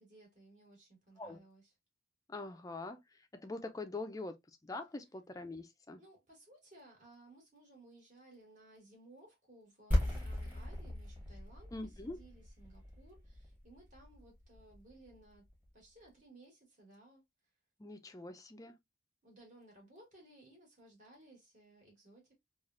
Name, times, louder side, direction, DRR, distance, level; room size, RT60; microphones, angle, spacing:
voice 1, 0.0-1.7 6.0-15.4 15.7-17.3 19.2-22.4, right 2 dB, 40° right, 1.6 m, -60 dB
voice 2, 2.3-6.0 11.7-12.2 17.8-18.8, left 2 dB, 15° left, 0.3 m, -44 dB
sound 1, 9.9-15.6, left 1 dB, 10° right, 1.2 m, -38 dB
3.3 x 2.4 x 2.4 m
head